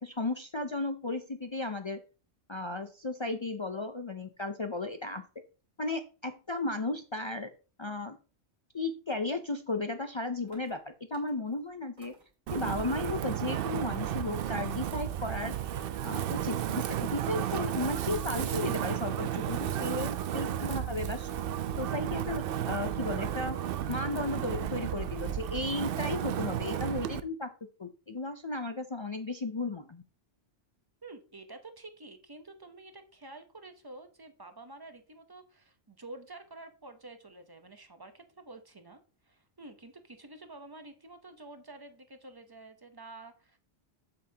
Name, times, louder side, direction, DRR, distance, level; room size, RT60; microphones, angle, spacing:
voice 1, 0.0-2.0 2.5-5.2 5.8-7.5 7.8-8.2 8.7-12.1 12.5-15.5 16.0-21.3 21.8-23.6 23.9-27.5 27.8-30.0, left 2 dB, 45° left, 7 dB, 0.4 m, -35 dB
sound 1, 10.4-10.8 11.1-11.6 12.0-12.3 12.8-13.2 13.5-13.7 14.0-14.3 14.6-15.1 15.5-16.1, right 2 dB, 40° right, 2.3 m, -57 dB
Wind, 12.5-27.2, right 10 dB, 65° right, 0.7 m, -33 dB
voice 2, 31.0-43.6, right 2 dB, 25° right, 8 dB, 0.7 m, -49 dB
7.7 x 7.6 x 2.8 m, 0.36 s
omnidirectional pair, 1.2 m